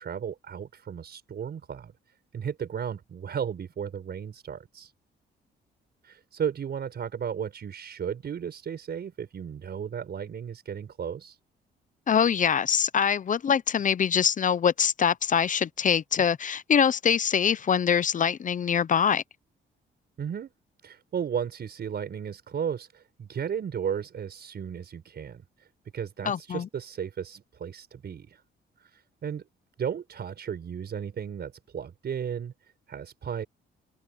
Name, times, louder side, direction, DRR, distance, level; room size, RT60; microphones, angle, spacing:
voice 1, 0.0-1.9 2.3-4.9 6.0-11.4 20.2-20.5 20.8-25.7 25.9-28.4 28.8-29.4 29.8-32.5 32.9-33.4, right 8 dB, 55° right, 5.8 m, -34 dB
voice 2, 12.1-19.2 26.2-26.7, left 7 dB, 40° left, 0.7 m, -24 dB
cardioid pair, 90°, 20 cm